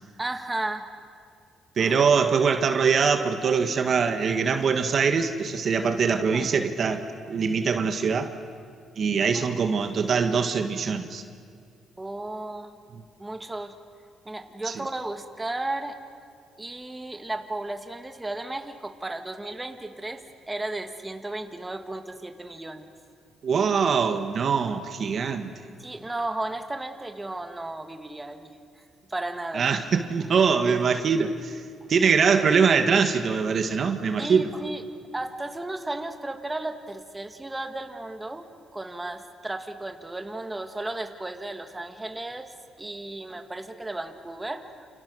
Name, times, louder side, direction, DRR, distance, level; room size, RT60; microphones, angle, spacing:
voice 1, 0.2-0.9 1.8-2.0 6.3-6.5 9.3-9.4 12.0-12.8 13.2-13.8 14.3-16.0 16.6-20.2 20.5-22.9 25.8-28.8 29.1-29.7 30.6-30.8 34.2-34.8 35.1-44.9, right 2 dB, 15° right, 6 dB, 2.0 m, -34 dB
voice 2, 1.8-8.3 9.0-11.2 14.7-14.8 23.4-25.5 29.5-31.6 31.9-34.5, right 5 dB, 55° right, 7 dB, 1.7 m, -23 dB
29.0 x 28.5 x 6.4 m, 2.2 s
cardioid pair, 90°, 0 cm